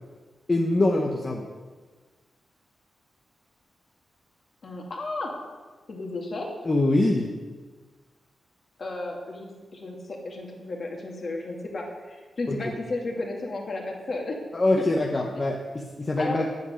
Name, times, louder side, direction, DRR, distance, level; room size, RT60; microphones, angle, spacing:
voice 1, 0.5-1.5 6.6-7.3 12.5-12.6 14.5-16.5, left 2 dB, 25° left, 1 dB, 1.1 m, -24 dB
voice 2, 4.6-5.3 5.9-6.5 8.8-14.4 14.8-14.9 16.2-16.6, left 2 dB, 45° left, 0 dB, 2.5 m, -33 dB
9.3 x 8.0 x 9.5 m, 1.4 s
wide cardioid pair, 140°, 0 cm